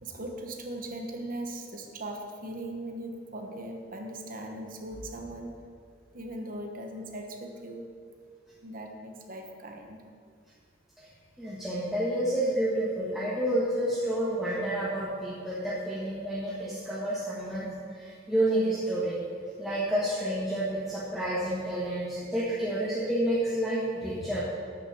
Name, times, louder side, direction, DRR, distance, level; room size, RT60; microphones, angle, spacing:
voice 1, 0.0-5.6 6.1-7.9 8.6-10.0, right 1 dB, 45° right, 3 dB, 1.1 m, -39 dB
voice 2, 11.4-19.2 19.6-24.4, right 1 dB, ahead, -9 dB, 1.4 m, -29 dB
9.5 x 6.1 x 7.0 m, 2.2 s
head